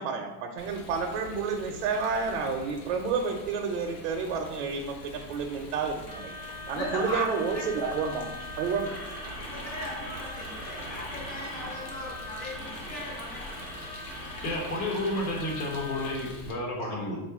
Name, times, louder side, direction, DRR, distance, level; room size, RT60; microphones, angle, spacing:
voice 1, 0.0-6.3 6.7-8.3 8.6-9.0, right 5 dB, 50° right, 2 dB, 0.4 m, -30 dB
Rain, 0.6-16.5, left 1 dB, 90° left, 1.1 m, -45 dB
sound 1, 6.1-16.1, left 1 dB, 25° left, 0.4 m, -41 dB
voice 2, 6.7-7.6 9.5-13.7 16.8-17.2, left 1 dB, 50° left, -3 dB, 1.1 m, -38 dB
voice 3, 14.4-17.2, left 1 dB, 70° left, -1 dB, 1.3 m, -31 dB
3.9 x 2.4 x 4.5 m, 1.0 s
supercardioid pair, 175°, 45 cm